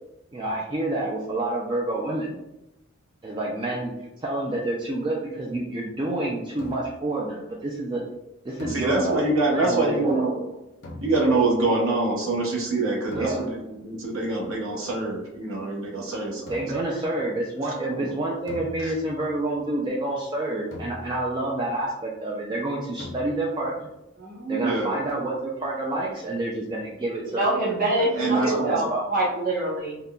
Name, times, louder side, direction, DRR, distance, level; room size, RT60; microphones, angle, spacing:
voice 1, 0.3-2.4 3.2-3.9 4.2-8.0 8.4-9.2 9.5-10.2 13.1-13.4 16.5-23.9 24.5-27.4 28.3-29.0, right 2 dB, 20° right, -4 dB, 0.3 m, -28 dB
sound 1, 6.6-7.1 8.6-9.5 10.8-11.6 13.1-13.8 16.5-17.0 18.5-19.3 20.7-21.5 23.0-23.7, left 1 dB, 55° left, 0.6 m, -41 dB
voice 2, 8.6-10.4 11.0-16.7 17.6-18.1 18.8-18.9 24.6-25.0 28.1-28.8, right 2 dB, 75° right, -3 dB, 0.8 m, -25 dB
voice 3, 24.2-24.7 27.2-30.0, right 2 dB, 40° right, -6 dB, 0.9 m, -25 dB
3.6 x 2.1 x 2.3 m, 0.92 s
head